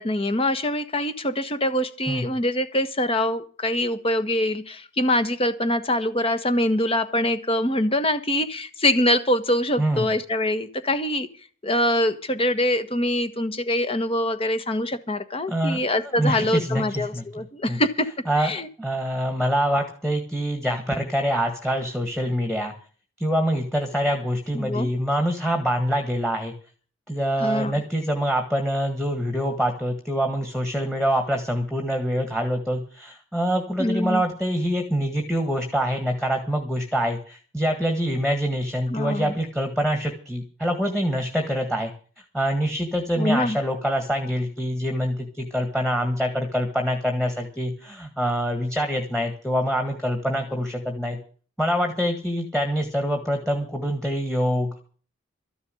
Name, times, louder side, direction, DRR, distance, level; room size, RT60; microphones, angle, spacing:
voice 1, 0.0-11.3 11.6-18.1 18.4-18.7 24.5-24.9 27.4-27.7 33.8-34.2 38.9-39.3 43.2-43.6, left 1 dB, 25° left, 10 dB, 1.3 m, -24 dB
voice 2, 9.8-10.1 15.5-15.8 16.1-17.2 17.7-17.8 18.3-18.5 18.8-22.7 23.2-26.5 27.1-41.9 42.3-51.2 51.6-54.7, equal, 5° left, 5 dB, 1.8 m, -25 dB
14.0 x 7.0 x 10.0 m, 0.41 s
head